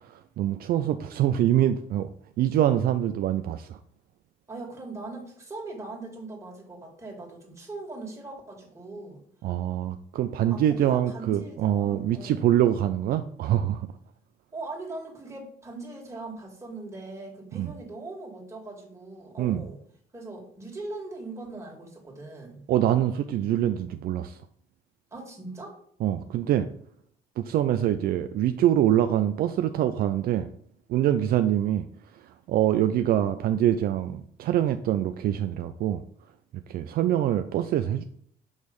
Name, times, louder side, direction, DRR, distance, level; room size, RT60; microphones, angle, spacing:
voice 1, 0.4-2.1 2.4-3.8 9.4-13.9 17.5-17.7 19.4-19.6 22.7-24.4 26.0-26.7 27.4-30.5 30.9-31.8 32.5-36.0 36.7-38.0, right 11 dB, 60° right, 9 dB, 0.4 m, -24 dB
voice 2, 4.5-9.2 10.5-12.4 14.5-19.8 20.1-22.6 25.1-25.8, right 2 dB, 15° right, -1 dB, 2.1 m, -40 dB
6.4 x 3.2 x 5.3 m, 0.63 s
cardioid pair, 110°, 17 cm